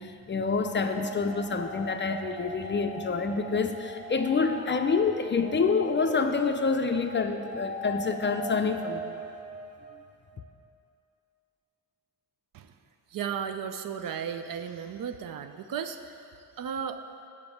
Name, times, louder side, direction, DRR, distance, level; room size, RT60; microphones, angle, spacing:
voice 1, 0.0-9.0, left 4 dB, 30° left, 6 dB, 0.4 m, -27 dB
sound 1, 0.6-10.4, right 1 dB, 20° right, 0.9 m, -40 dB
voice 2, 13.1-16.3 16.6-17.0, right 7 dB, 60° right, 9 dB, 0.6 m, -35 dB
6.6 x 5.2 x 7.0 m, 2.6 s
cardioid pair, 85°, 38 cm